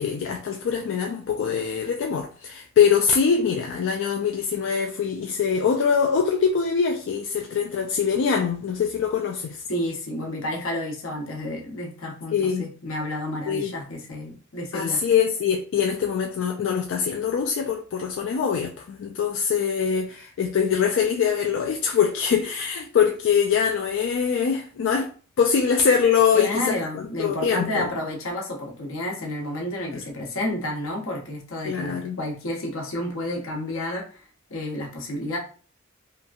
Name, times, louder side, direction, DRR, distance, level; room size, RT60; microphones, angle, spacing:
voice 1, 0.0-9.6 12.3-12.7 13.5-13.7 14.7-25.1 25.4-27.9 29.9-30.0 31.6-32.2, left 7 dB, 65° left, 0.3 m, -23 dB
voice 2, 9.7-15.0 26.3-35.4, left 1 dB, 85° left, 0.8 m, -30 dB
2.8 x 2.3 x 2.5 m
head